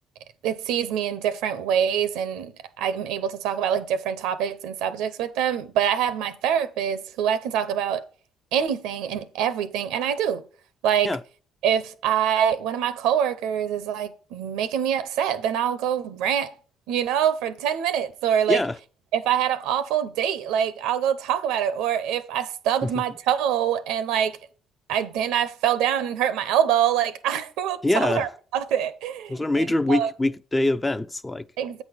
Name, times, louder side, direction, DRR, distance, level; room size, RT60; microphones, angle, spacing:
voice 1, 0.4-8.0 8.5-10.4 10.8-11.2 11.6-16.5 16.9-18.6 19.1-24.4 24.9-30.1 31.6-31.8, right 9 dB, 80° right, 0.7 m, -25 dB
voice 2, 27.8-28.3 29.3-31.5, left 2 dB, 15° left, 0.4 m, -24 dB
8.3 x 4.2 x 6.3 m
supercardioid pair, 70°, 0 cm